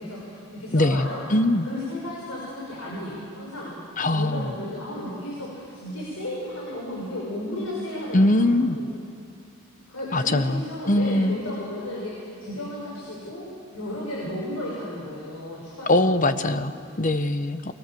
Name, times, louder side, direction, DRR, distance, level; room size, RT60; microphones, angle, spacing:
voice 1, 0.0-1.3 1.7-3.7 4.1-8.9 9.9-13.5 13.7-16.7, left 1 dB, 85° left, -5 dB, 7.1 m, -34 dB
voice 2, 0.7-1.7 4.0-4.4 8.1-8.8 10.1-11.4 15.9-17.7, left 1 dB, 40° left, 10 dB, 0.9 m, -22 dB
28.5 x 24.5 x 7.7 m, 2.4 s
head